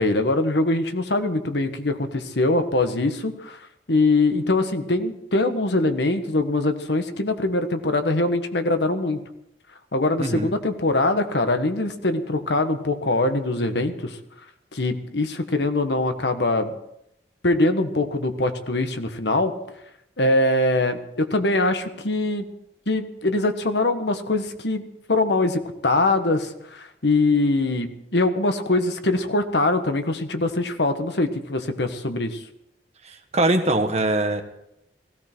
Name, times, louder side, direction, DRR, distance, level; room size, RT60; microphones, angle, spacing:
voice 1, 0.0-3.6 3.9-9.2 9.9-14.2 14.7-16.7 17.4-19.5 20.2-22.5 22.9-24.8 25.1-32.4, left 2 dB, 70° left, 8 dB, 1.4 m, -23 dB
voice 2, 10.2-10.5 33.0-34.4, right 2 dB, 40° right, 6 dB, 1.4 m, -22 dB
17.5 x 16.0 x 4.5 m, 0.79 s
head